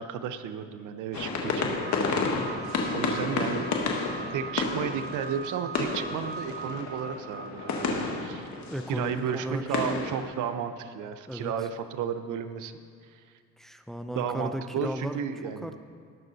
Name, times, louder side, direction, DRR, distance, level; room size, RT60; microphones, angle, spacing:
voice 1, 0.0-1.7 2.9-3.8 4.3-8.5 8.9-12.7 14.1-15.7, right 8 dB, 80° right, 10 dB, 0.7 m, -33 dB
sound 1, 1.1-10.2, left 4 dB, 65° left, 1.5 m, -31 dB
sound 2, 1.5-9.3, right 4 dB, 35° right, 1.0 m, -42 dB
voice 2, 8.7-10.1 11.3-11.5 13.6-15.2 15.6-15.9, equal, ahead, 8 dB, 0.5 m, -35 dB
18.5 x 6.2 x 4.0 m, 2.2 s
cardioid pair, 90°, 30 cm